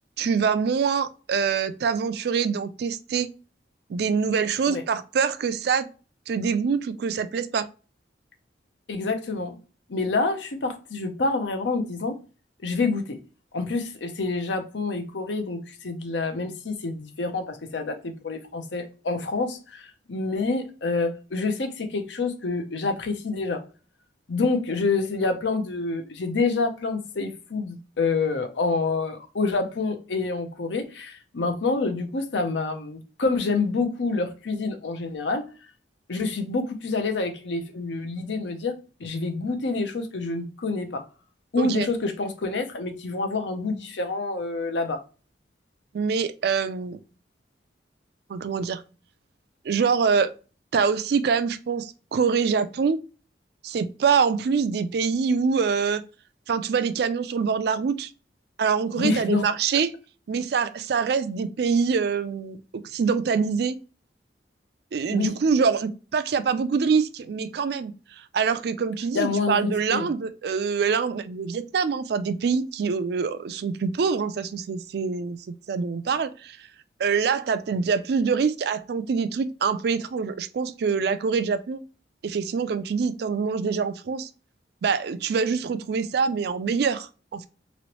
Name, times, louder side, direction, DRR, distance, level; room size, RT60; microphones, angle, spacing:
voice 1, 0.2-3.3 3.9-5.9 6.3-7.7 41.6-41.9 45.9-47.0 48.3-48.8 49.7-50.3 50.7-53.0 53.6-56.0 56.5-58.1 58.6-59.9 60.3-63.8 64.9-67.9 68.3-75.4 75.7-76.6 77.0-81.8 82.2-84.3 84.8-87.5, right 5 dB, 60° right, 0.3 m, -25 dB
voice 2, 8.9-9.6 9.9-12.2 12.6-13.2 13.5-23.6 24.3-35.4 36.1-38.7 39.0-41.0 41.5-45.0 59.0-59.4 65.1-65.3 69.1-70.1, left 3 dB, 80° left, 0.7 m, -27 dB
3.1 x 2.9 x 2.9 m
head